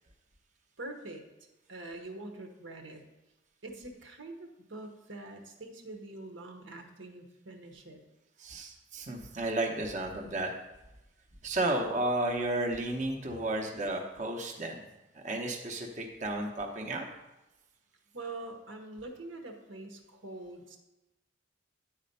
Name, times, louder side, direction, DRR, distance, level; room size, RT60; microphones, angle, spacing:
voice 1, 0.8-1.3 1.7-3.0 3.6-8.0 18.1-20.8, right 2 dB, 85° right, 4 dB, 1.1 m, -44 dB
voice 2, 8.4-10.5 11.4-14.9 15.1-17.0, right 2 dB, 40° right, 1 dB, 0.8 m, -33 dB
9.6 x 4.2 x 5.3 m, 0.99 s
head